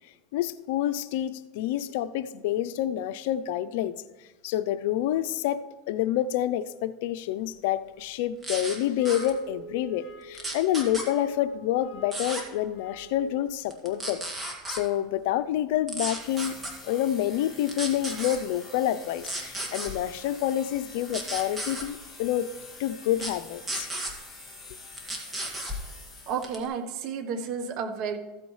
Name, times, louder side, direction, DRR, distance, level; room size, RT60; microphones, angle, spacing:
voice 1, 0.3-3.9 4.4-5.6 5.9-14.2 14.7-16.6 16.8-22.5 22.8-23.9, left 12 dB, 75° left, 0.5 m, -28 dB
sound 1, 8.4-8.8 9.1-9.3 10.3-11.1 12.1-12.4 13.7-14.8 15.9-16.7 17.7-18.4 19.2-19.9 21.1-21.9 23.2-23.3 23.7-24.1 25.0-25.8 26.4-26.7, right 1 dB, 15° right, 2.0 m, -33 dB
sound 2, 9.0-13.3, right 2 dB, 50° left, 2.4 m, -46 dB
sound 3, 16.2-26.7, left 3 dB, 10° left, 2.8 m, -47 dB
voice 2, 26.3-28.2, right 6 dB, 55° right, 1.1 m, -31 dB
14.5 x 8.4 x 3.2 m
supercardioid pair, 115°, 0 cm